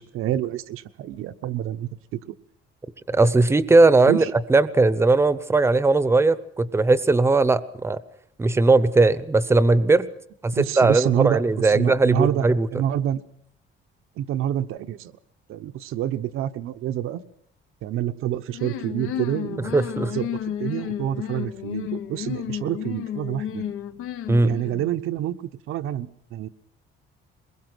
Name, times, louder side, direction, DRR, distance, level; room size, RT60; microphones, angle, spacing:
voice 1, 0.0-2.2 4.1-4.3 10.5-13.2 14.2-15.1 15.5-17.2 17.8-19.7 20.1-20.3 20.6-23.7 24.4-26.5, right 11 dB, 80° right, 11 dB, 1.0 m, -27 dB
voice 2, 3.1-4.2 4.5-8.0 8.4-10.1 10.4-12.7 19.7-20.1 24.3-24.5, right 3 dB, 10° right, 15 dB, 0.7 m, -18 dB
sound 1, 18.5-25.0, left 10 dB, 85° left, 1.1 m, -32 dB
22.0 x 21.0 x 6.2 m, 0.69 s
cardioid pair, 160°, 21 cm